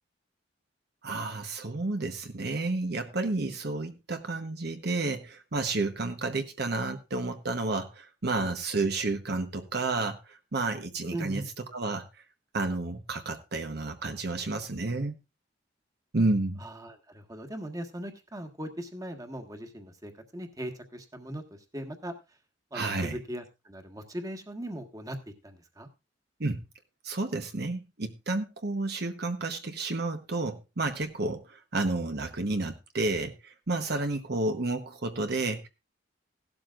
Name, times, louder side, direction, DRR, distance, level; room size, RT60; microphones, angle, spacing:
voice 1, 1.0-11.4 11.7-12.2 12.5-15.2 16.1-16.6 22.7-23.2 26.4-26.6 27.0-35.7, right 2 dB, 60° right, 6 dB, 1.0 m, -31 dB
voice 2, 11.1-11.5 16.6-22.1 22.7-25.2 25.4-25.9, right 1 dB, 20° right, 5 dB, 1.5 m, -39 dB
16.5 x 12.0 x 2.5 m, 0.25 s
head